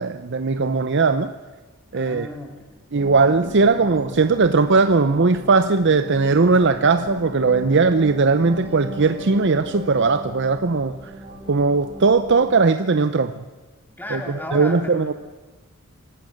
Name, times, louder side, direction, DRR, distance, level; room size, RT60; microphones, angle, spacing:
voice 1, 0.0-1.3 1.9-2.3 2.9-11.0 11.5-13.4 14.1-14.2 14.5-15.1, right 4 dB, 55° right, 10 dB, 0.7 m, -18 dB
voice 2, 1.9-2.8 14.0-15.1, left 1 dB, 10° left, 2 dB, 2.9 m, -34 dB
sound 1, 2.9-12.5, right 1 dB, 25° right, 5.3 m, -37 dB
26.0 x 18.0 x 6.5 m, 1.3 s
head